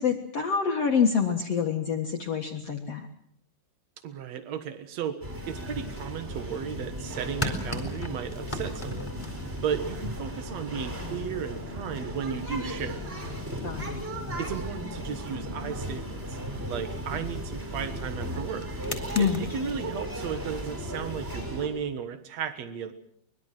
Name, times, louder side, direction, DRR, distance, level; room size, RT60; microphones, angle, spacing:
voice 1, 0.0-3.1 13.6-14.0 19.1-19.4, left 6 dB, 75° left, 3 dB, 1.4 m, -26 dB
voice 2, 4.0-9.1 9.6-13.0 14.4-16.4 16.7-18.7 19.2-22.9, right 7 dB, 90° right, 10 dB, 1.4 m, -34 dB
sound 1, 5.2-21.7, equal, 10° right, 5.6 m, -36 dB
sound 2, 7.2-21.9, left 2 dB, 10° left, 2.6 m, -42 dB
24.0 x 22.0 x 7.5 m, 0.67 s
omnidirectional pair, 5.5 m